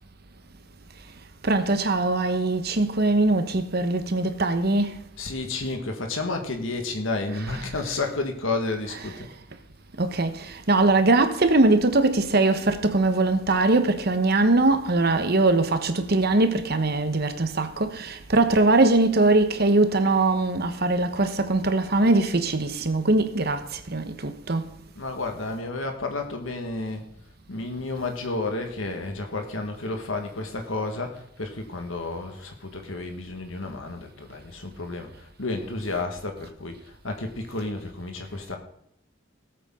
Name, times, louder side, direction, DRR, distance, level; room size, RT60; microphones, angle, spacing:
voice 1, 1.4-5.0 10.0-23.6 23.9-24.6, right 2 dB, 55° right, 1.2 m, -21 dB
voice 2, 5.2-9.3 24.9-27.0 27.5-38.6, left 3 dB, 85° left, 1.7 m, -31 dB
18.5 x 8.2 x 3.8 m
head